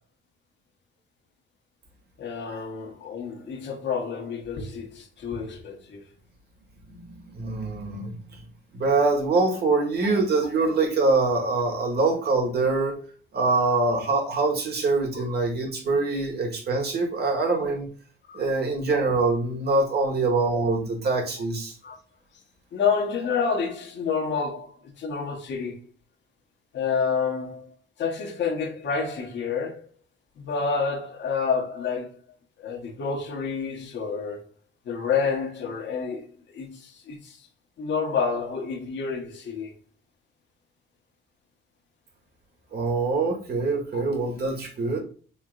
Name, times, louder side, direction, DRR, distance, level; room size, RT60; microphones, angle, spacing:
voice 1, 2.2-6.0 13.5-13.6 15.1-15.2 18.3-18.4 21.8-22.0 22.7-25.8 26.7-27.7 28.0-29.9 30.4-32.1 32.6-34.4 34.9-36.3 36.5-37.4 37.8-39.7 43.9-44.0, left 5 dB, 65° left, 1.2 m, -29 dB
voice 2, 6.9-8.2 8.7-13.0 13.3-17.9 18.3-21.7 42.7-45.0, right 3 dB, 55° right, 1.6 m, -24 dB
4.3 x 3.8 x 2.4 m
cardioid pair, 90°, 20 cm